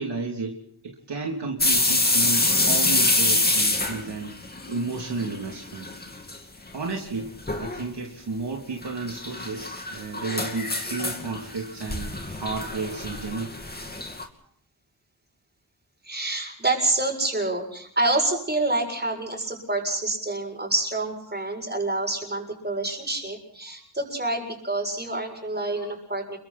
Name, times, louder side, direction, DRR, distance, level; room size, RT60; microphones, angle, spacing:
voice 1, 0.0-4.3 4.7-5.9 6.7-13.5, right 3 dB, 70° right, 0 dB, 3.2 m, -32 dB
sound 1, 1.6-5.4 5.7-6.4 6.7-6.8 7.5-7.8 8.8-14.2, left 2 dB, 20° left, 2.7 m, -25 dB
voice 2, 16.0-26.4, right 2 dB, 25° right, 1 dB, 7.3 m, -27 dB
29.5 x 23.5 x 4.4 m, 0.62 s
wide cardioid pair, 95°, 42 cm